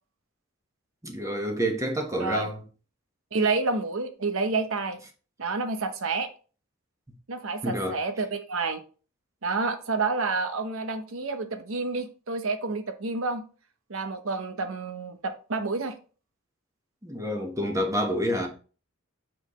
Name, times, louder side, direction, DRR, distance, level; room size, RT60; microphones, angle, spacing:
voice 1, 1.0-2.6 7.6-8.0 17.0-18.5, equal, 15° right, 1.3 m, -28 dB
voice 2, 2.2-2.5 3.3-5.0 5.4-6.3 7.3-8.8 9.4-13.4 13.9-15.9 18.4-18.5, right 3 dB, 75° right, 0.9 m, -29 dB
6.2 x 5.6 x 3.1 m
head